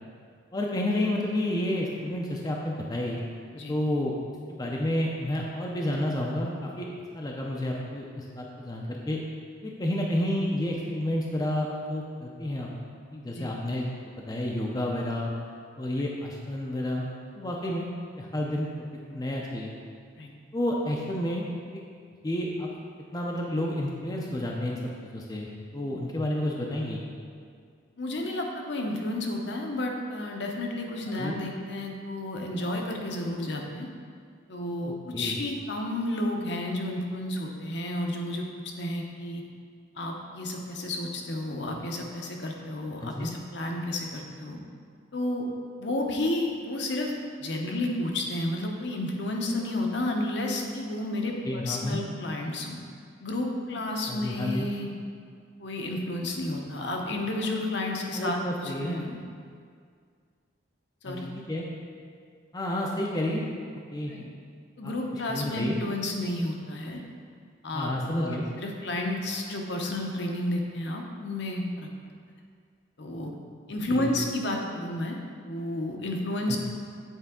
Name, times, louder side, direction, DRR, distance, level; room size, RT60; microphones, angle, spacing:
voice 1, 0.5-3.2 3.7-4.2 4.5-6.9 7.1-9.2 9.6-12.7 13.1-13.9 14.3-15.3 15.8-17.1 17.3-17.9 18.2-18.7 19.1-19.7 20.5-21.5 21.7-21.8 22.2-22.7 23.1-27.0 31.2-31.4 34.8-35.4 43.0-43.3 51.4-52.0 54.1-54.7 58.1-59.0 61.0-61.7 62.5-63.4 63.9-64.1 64.8-64.9 65.3-65.7 67.7-68.5 73.9-74.1 76.5-76.6, left 1 dB, 20° left, -2 dB, 0.5 m, -30 dB
voice 2, 28.0-33.9 34.5-38.4 38.8-39.4 40.0-44.6 45.1-45.5 45.8-47.1 47.4-52.8 53.2-54.9 55.6-59.2 61.0-61.3 64.1-64.2 64.8-67.0 67.6-71.9 73.0-73.3 73.7-75.2 75.4-76.6, left 1 dB, 60° left, 1 dB, 0.8 m, -31 dB
8.2 x 4.4 x 3.7 m, 2.1 s
head